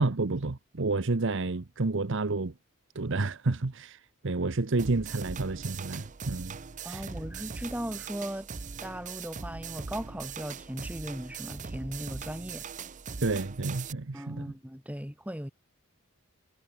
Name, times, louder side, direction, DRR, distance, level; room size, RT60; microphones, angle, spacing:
voice 1, 0.0-2.5 2.9-6.6 6.9-7.1 13.2-14.5, right 3 dB, 60° right, 0.9 m, -30 dB
sound 1, 4.8-13.9, right 5 dB, 35° right, 0.7 m, -40 dB
voice 2, 6.8-8.5 8.8-12.6 14.1-15.5, equal, 5° right, 3.0 m, -38 dB
head